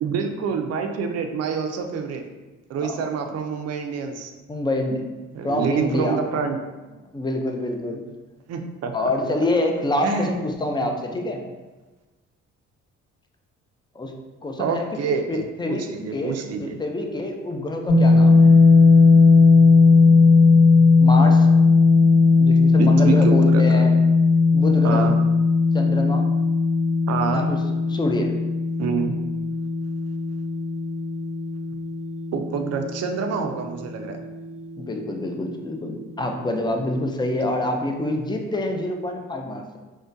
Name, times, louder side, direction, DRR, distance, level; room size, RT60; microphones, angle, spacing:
voice 1, 0.0-2.2 2.7-4.3 5.3-6.6 8.5-8.9 10.0-10.3 10.8-10.9 14.6-16.8 22.8-23.8 24.8-25.1 27.1-27.5 28.8-29.1 32.3-34.2, right 5 dB, 55° right, 5 dB, 0.4 m, -27 dB
voice 2, 4.5-5.0 5.4-6.3 7.1-8.1 8.9-11.4 14.0-14.1 14.4-14.9 15.3-15.9 16.1-18.5 21.0-21.5 22.4-24.0 24.5-25.1 25.7-26.3 27.3-28.3 34.8-39.8, left 1 dB, 15° left, 3 dB, 0.4 m, -26 dB
sound 1, 17.9-33.8, left 4 dB, 50° left, 0.9 m, -17 dB
3.6 x 2.1 x 2.6 m, 1.2 s
cardioid pair, 90°, 30 cm